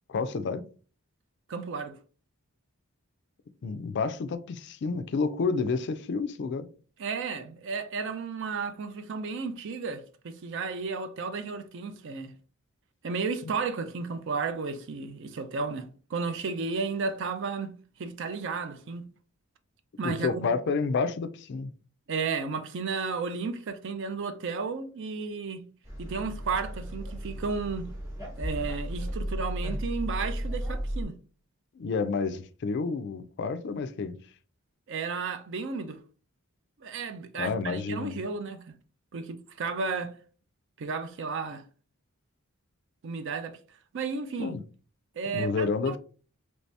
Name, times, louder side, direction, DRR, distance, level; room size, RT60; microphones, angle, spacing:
voice 1, 0.1-0.6 3.6-6.7 20.0-21.7 31.8-34.2 37.4-38.2 44.4-44.6 45.3-46.0, left 4 dB, 50° left, 0.3 m, -30 dB
voice 2, 1.5-2.0 7.0-12.3 13.0-17.7 18.0-19.1 20.0-20.5 22.1-25.6 26.0-27.9 28.4-31.2 34.9-36.0 36.8-38.7 39.1-40.2 40.8-41.6 43.0-43.6 43.9-44.6 45.2-46.0, right 4 dB, 55° right, 0.4 m, -33 dB
sound 1, 25.8-31.0, equal, 15° right, 1.0 m, -34 dB
3.1 x 2.7 x 3.2 m
head